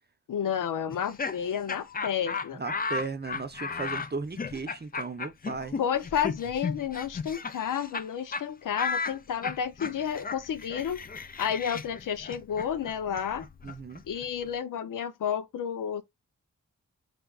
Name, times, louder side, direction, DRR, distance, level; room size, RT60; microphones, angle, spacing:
voice 1, 0.3-2.6 5.8-11.0 11.4-13.4 14.1-16.0, left 8 dB, 85° left, 0.6 m, -31 dB
Laughter, 0.9-8.1 8.3-8.4 8.8-14.5, left 5 dB, 30° left, 0.5 m, -35 dB
voice 2, 2.5-5.8 13.6-14.0, right 4 dB, 35° right, 0.7 m, -36 dB
3.8 x 3.4 x 2.3 m
cardioid pair, 50°, 31 cm